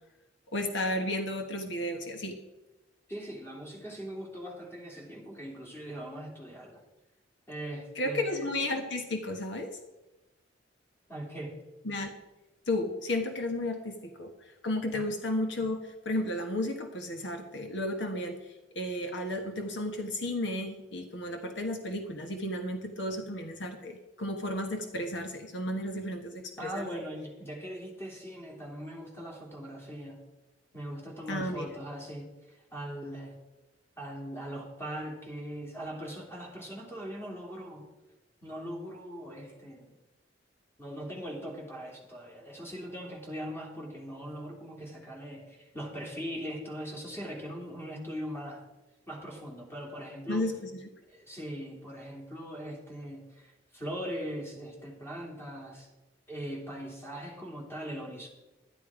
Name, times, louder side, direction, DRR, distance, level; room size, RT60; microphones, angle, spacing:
voice 1, 0.5-2.4 7.9-9.8 11.8-12.1 12.7-27.0 31.3-31.7 50.3-50.7, left 1 dB, 70° left, 5 dB, 1.3 m, -33 dB
voice 2, 3.1-6.8 7.5-8.5 11.1-11.6 14.9-15.1 26.6-30.2 30.7-32.3 32.7-33.4 34.0-37.9 38.4-39.9 40.8-48.6 49.1-50.5 51.1-55.9 56.3-58.3, equal, 15° left, -2 dB, 3.1 m, -40 dB
12.0 x 10.5 x 5.0 m, 1.0 s
head